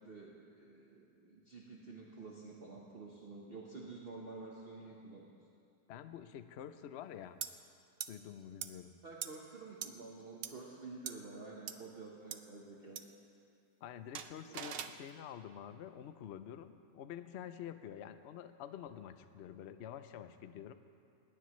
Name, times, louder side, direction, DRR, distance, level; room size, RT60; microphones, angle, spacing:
voice 1, 0.0-5.3 9.0-13.1 14.5-14.7, right 3 dB, 40° right, -3 dB, 1.3 m, -50 dB
voice 2, 5.9-7.4 8.1-8.9 13.8-20.7, left 9 dB, 60° left, 11 dB, 0.7 m, -48 dB
sound 1, 7.4-7.5 8.0-8.1 8.6-8.7 9.2-9.3 9.8-9.9 10.4-10.5 11.1-11.2 11.7-11.8 12.3-12.4 13.0-13.1 14.1-15.0, right 8 dB, 75° right, 0.5 m, -41 dB
20.0 x 17.5 x 3.2 m, 2.5 s
omnidirectional pair, 1.8 m